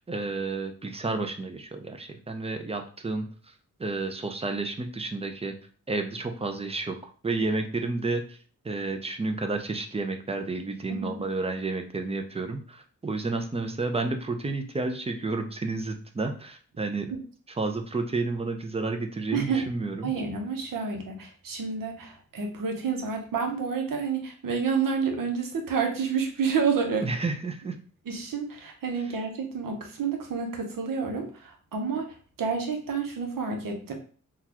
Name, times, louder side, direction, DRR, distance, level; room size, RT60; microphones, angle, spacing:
voice 1, 0.0-3.5 3.8-5.6 5.9-7.0 7.2-8.4 8.6-17.1 17.6-20.1 27.0-27.7, right 3 dB, 20° right, 6 dB, 0.4 m, -31 dB
voice 2, 10.9-11.2 19.3-19.7 20.0-27.1 28.1-33.9, right 5 dB, 80° right, 3 dB, 0.8 m, -29 dB
3.7 x 2.3 x 2.8 m, 0.42 s
wide cardioid pair, 85°, 33 cm